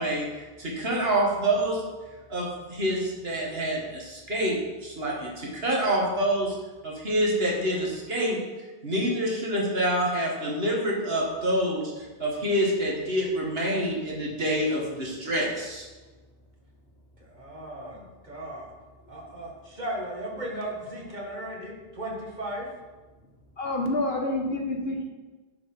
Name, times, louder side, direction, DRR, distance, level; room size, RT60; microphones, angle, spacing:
voice 1, 0.0-1.8 2.3-6.6 6.8-8.4 8.8-15.9, right 1 dB, 75° right, -2 dB, 2.2 m, -27 dB
voice 2, 17.2-18.7 19.1-22.7, right 1 dB, 45° right, -2 dB, 2.0 m, -36 dB
voice 3, 23.6-25.1, left 2 dB, 70° left, 1 dB, 1.6 m, -28 dB
10.5 x 4.7 x 5.6 m, 1.3 s
omnidirectional pair, 1.0 m